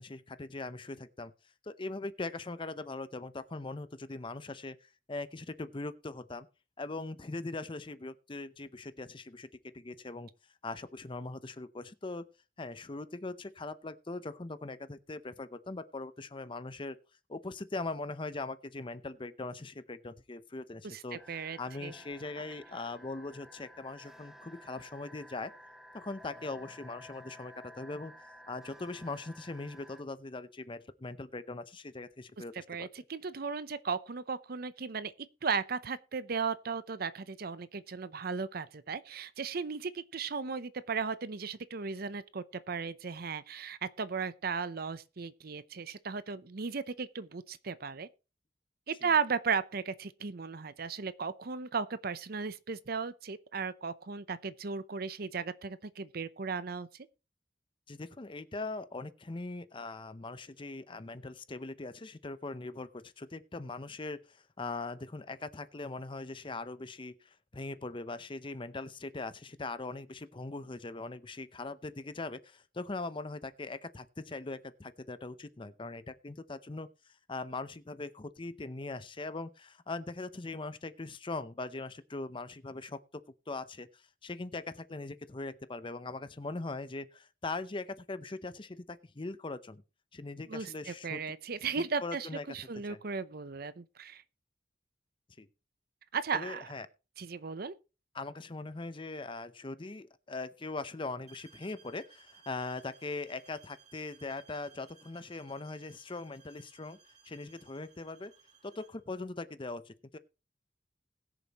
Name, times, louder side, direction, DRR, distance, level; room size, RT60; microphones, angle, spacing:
voice 1, 0.0-1.3 1.6-6.5 6.8-9.5 9.7-10.3 10.6-12.3 12.6-17.0 17.3-21.2 21.6-25.5 25.9-28.1 28.5-32.9 49.0-49.1 57.9-76.9 77.3-83.0 83.5-83.9 84.2-89.8 90.1-91.2 91.8-92.4 92.9-93.0 95.4-95.5 96.3-96.9 98.1-107.0 107.2-108.3 108.6-110.2, left 3 dB, 30° left, 0.7 m, -41 dB
voice 2, 20.8-21.9 32.7-35.1 35.4-48.1 48.9-56.9 90.5-94.2 96.1-96.7 97.2-97.7, right 5 dB, 55° right, 0.7 m, -36 dB
sound 1, 21.2-30.0, left 1 dB, 5° right, 1.2 m, -53 dB
sound 2, 101.3-109.0, right 7 dB, 40° right, 2.6 m, -61 dB
20.5 x 7.0 x 3.0 m
head